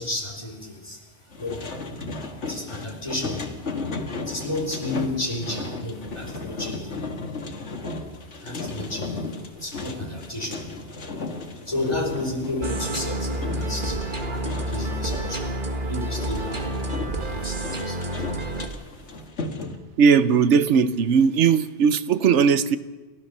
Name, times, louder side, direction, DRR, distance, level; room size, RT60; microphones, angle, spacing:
voice 1, 0.0-19.3, left 2 dB, 25° left, 4.4 m, -33 dB
sound 1, 1.3-15.4 16.1-19.8, left 3 dB, 90° left, 2.0 m, -35 dB
sound 2, 12.6-18.7, right 1 dB, 45° right, 1.8 m, -29 dB
voice 2, 20.0-22.8, right 6 dB, 85° right, 1.2 m, -18 dB
30.0 x 13.0 x 6.7 m
omnidirectional pair, 1.2 m